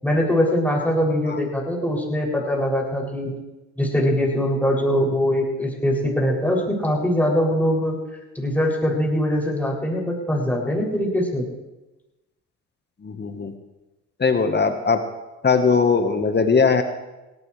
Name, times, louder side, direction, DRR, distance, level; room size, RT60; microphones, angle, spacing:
voice 1, 0.0-3.3 3.8-7.9 8.3-11.4, equal, 5° left, -2 dB, 7.5 m, -22 dB
voice 2, 13.0-13.5 14.2-15.0 15.4-16.8, left 5 dB, 30° left, 7 dB, 1.6 m, -19 dB
20.0 x 18.0 x 3.5 m, 1.1 s
hypercardioid pair, 60°, 34 cm